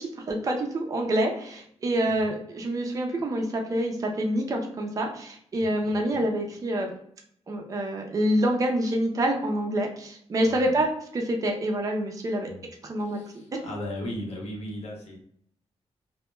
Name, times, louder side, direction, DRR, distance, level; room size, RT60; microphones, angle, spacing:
voice 1, 0.0-6.9 7.5-12.5 12.8-13.2 13.5-13.6, right 1 dB, 30° right, 2 dB, 0.4 m, -27 dB
voice 2, 5.8-6.2 10.5-10.8 12.5-12.7 13.0-15.2, left 1 dB, 80° left, 0 dB, 0.8 m, -37 dB
2.1 x 2.1 x 3.0 m, 0.65 s
wide cardioid pair, 150°, 11 cm